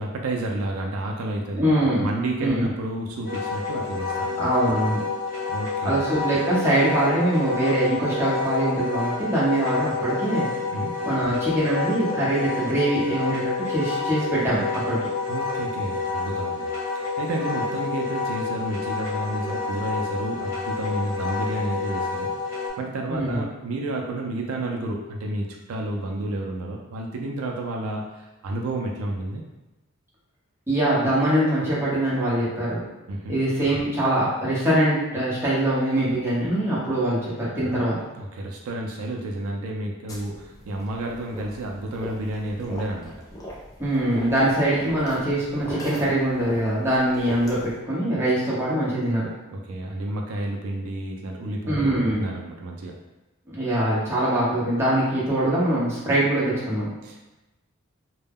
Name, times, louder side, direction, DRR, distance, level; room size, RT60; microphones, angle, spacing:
voice 1, 0.0-1.7 2.0-4.4 5.5-6.0 10.7-11.0 15.3-16.7 16.9-22.3 22.8-29.4 33.1-33.4 37.6-37.7 38.2-43.2 49.5-51.9 52.2-53.0 57.0-57.3, right 1 dB, 75° right, 0 dB, 0.4 m, -31 dB
voice 2, 1.5-2.1 2.4-2.7 4.4-5.0 5.8-10.5 11.0-15.0 23.1-23.4 30.7-32.8 33.3-38.0 43.8-49.3 51.7-52.2 53.5-56.9, right 1 dB, 10° right, -8 dB, 0.8 m, -23 dB
Wind instrument woodwind instrument, 3.2-22.7, left 4 dB, 60° left, 0.7 m, -29 dB
sound 1, 40.1-47.8, equal, 15° left, 0.5 m, -40 dB
2.1 x 2.0 x 3.4 m, 1.0 s
head